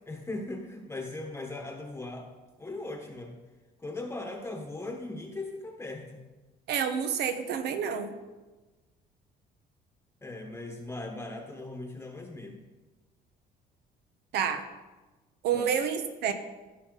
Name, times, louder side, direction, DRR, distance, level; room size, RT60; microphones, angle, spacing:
voice 1, 0.0-2.3 2.6-3.4 3.8-6.2 10.2-12.6 15.5-15.6, left 2 dB, 15° left, 2 dB, 1.2 m, -39 dB
voice 2, 6.7-8.1 14.3-14.6 15.4-16.3, right 7 dB, 75° right, 8 dB, 1.1 m, -29 dB
15.5 x 5.7 x 4.0 m, 1.2 s
cardioid pair, 110°, 17 cm